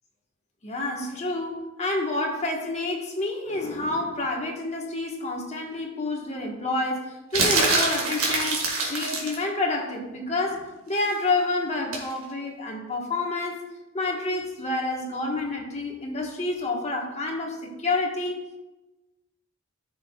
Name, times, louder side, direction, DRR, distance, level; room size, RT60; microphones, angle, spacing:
voice 1, 0.6-13.6 13.9-18.5, left 2 dB, 30° left, 0 dB, 1.3 m, -29 dB
sound 1, 7.3-9.4 11.9-12.1, right 3 dB, 85° right, 1.7 m, -24 dB
14.0 x 5.6 x 2.3 m, 1.1 s
head